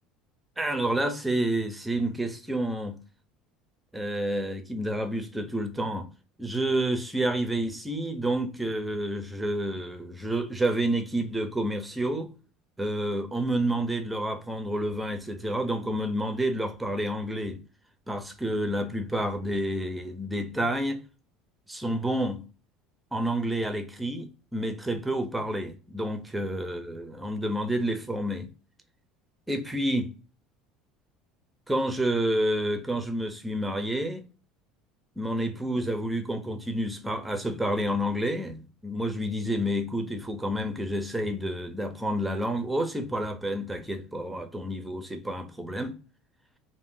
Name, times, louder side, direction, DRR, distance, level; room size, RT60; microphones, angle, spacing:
voice 1, 0.6-3.0 3.9-6.1 6.4-12.3 12.8-17.6 18.1-21.0 21.7-22.4 23.1-28.5 29.5-30.1 31.7-34.2 35.2-45.9, right 1 dB, 5° right, 0.4 m, -29 dB
2.5 x 2.0 x 3.6 m
cardioid pair, 135°, 0 cm